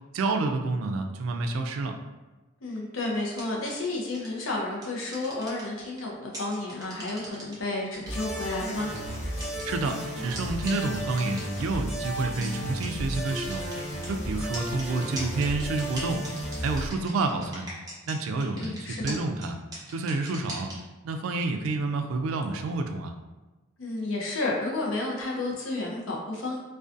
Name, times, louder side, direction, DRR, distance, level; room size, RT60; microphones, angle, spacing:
voice 1, 0.1-2.0 9.6-13.6 14.1-16.2 16.6-17.7 18.1-19.6 19.9-20.7 21.0-23.1, right 3 dB, 80° right, 5 dB, 0.3 m, -29 dB
voice 2, 2.6-8.9 18.5-19.2 23.8-26.6, left 2 dB, 70° left, -2 dB, 0.6 m, -31 dB
sound 1, 3.4-3.7 4.1-4.4 4.8-6.0 6.3-7.5 7.9-9.9 10.3-10.4 10.7-10.8 11.2-11.6 12.0-12.1 12.4-12.5 12.8-12.9 13.1-14.1 14.5-18.1 18.4-18.8 19.1-19.2 19.4-19.5 19.7-20.7, right 1 dB, 20° right, 0.6 m, -39 dB
sound 2, 8.1-16.9, equal, 35° left, 0.9 m, -34 dB
2.4 x 2.2 x 2.5 m, 1.1 s
head